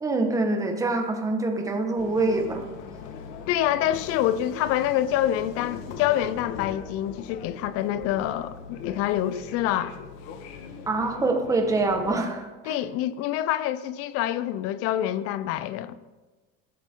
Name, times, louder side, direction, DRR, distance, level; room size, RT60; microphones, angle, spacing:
voice 1, 0.0-2.6 10.9-12.8, right 2 dB, 10° right, 1.6 m, -25 dB
sound 1, 2.0-12.2, left 6 dB, 75° left, 1.8 m, -40 dB
voice 2, 3.5-9.9 12.6-16.0, left 12 dB, 50° left, 0.7 m, -26 dB
20.5 x 13.0 x 3.8 m
cardioid pair, 160°, 29 cm